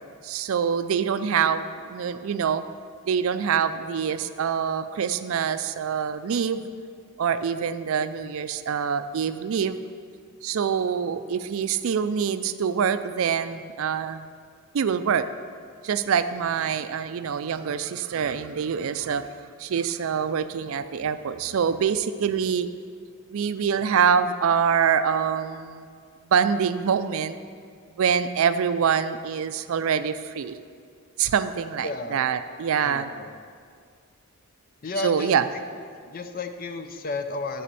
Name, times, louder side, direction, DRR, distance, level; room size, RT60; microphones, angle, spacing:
voice 1, 0.2-2.6 3.1-6.7 7.2-9.8 10.4-14.3 14.7-15.3 15.8-19.3 19.6-22.7 23.3-25.9 26.3-27.4 28.0-30.6 31.2-33.1 35.0-35.5, right 7 dB, 65° right, 12 dB, 0.4 m, -25 dB
voice 2, 31.8-32.2 32.8-33.3 34.8-35.3 36.1-37.6, left 2 dB, 40° left, 8 dB, 0.5 m, -32 dB
10.0 x 4.2 x 6.8 m, 2.1 s
head